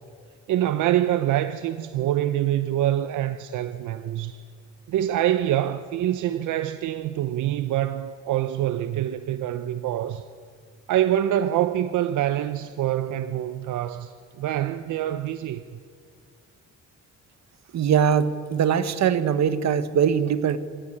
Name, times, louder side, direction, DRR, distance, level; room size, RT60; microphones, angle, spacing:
voice 1, 0.5-4.4 4.9-10.2 10.9-15.6, right 12 dB, 80° right, 0.8 m, -25 dB
voice 2, 17.7-20.6, right 8 dB, 60° right, 1.3 m, -21 dB
26.0 x 14.0 x 9.0 m
cardioid pair, 90°, 30 cm